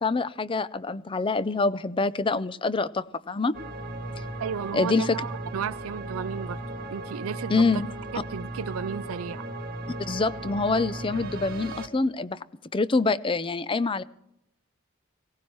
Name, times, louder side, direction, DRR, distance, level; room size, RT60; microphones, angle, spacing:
voice 1, 0.0-3.6 4.7-5.2 7.5-7.9 10.1-12.4 12.7-14.0, left 3 dB, 25° left, 0.5 m, -25 dB
sound 1, 3.5-11.9, right 2 dB, 45° right, 1.3 m, -36 dB
voice 2, 4.4-6.6 6.9-7.8 8.1-9.4, right 7 dB, 80° right, 0.4 m, -34 dB
19.0 x 17.0 x 3.1 m
head